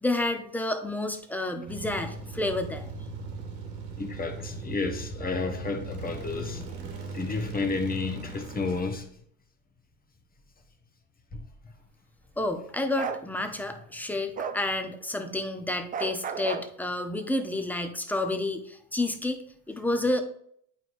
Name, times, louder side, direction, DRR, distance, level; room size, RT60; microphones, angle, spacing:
voice 1, 0.0-2.9 12.4-20.2, left 2 dB, 5° left, 7 dB, 0.7 m, -30 dB
sound 1, 1.7-8.8, right 3 dB, 85° right, 1.6 m, -39 dB
voice 2, 4.0-6.6 7.1-9.1 11.3-11.4, left 3 dB, 20° left, 5 dB, 1.1 m, -31 dB
Bark, 13.0-13.2 14.4-14.6 15.9-16.7, right 6 dB, 20° right, 0.4 m, -32 dB
8.8 x 4.6 x 2.6 m, 0.67 s
supercardioid pair, 95°, 42 cm